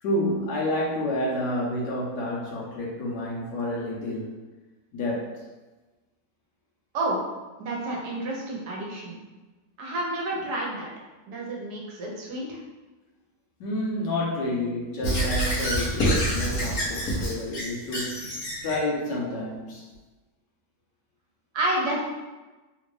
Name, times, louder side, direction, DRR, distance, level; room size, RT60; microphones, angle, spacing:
voice 1, 0.0-4.4 4.9-5.4 13.6-18.3 18.6-19.9, left 1 dB, 80° left, -4 dB, 1.5 m, -29 dB
voice 2, 7.6-9.2 9.8-10.9 11.3-12.6 21.5-22.0, right 1 dB, 70° right, -2 dB, 1.3 m, -29 dB
Squeak / Writing, 15.0-18.8, right 1 dB, 60° left, 1.3 m, -27 dB
3.7 x 2.5 x 3.2 m, 1.2 s
omnidirectional pair, 1.9 m